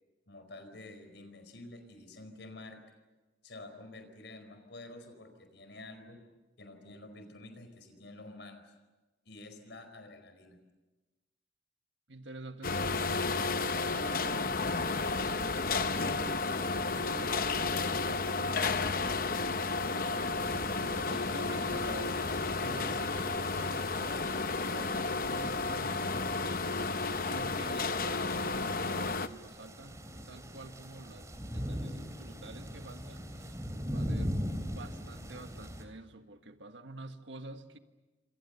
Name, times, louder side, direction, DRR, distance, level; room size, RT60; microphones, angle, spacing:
voice 1, 0.3-2.8 3.4-6.2 6.6-8.7 9.2-10.6 22.5-23.1, left 2 dB, 70° left, 8 dB, 4.7 m, -49 dB
voice 2, 12.1-13.3 13.9-19.3 19.5-20.6 20.8-26.7 27.2-33.6 33.9-37.8, right 2 dB, 80° right, 8 dB, 1.6 m, -48 dB
sound 1, 12.6-29.3, left 3 dB, 50° left, 0.8 m, -32 dB
sound 2, 20.4-35.8, equal, 15° right, 2.9 m, -42 dB
27.5 x 26.0 x 7.0 m, 1.2 s
head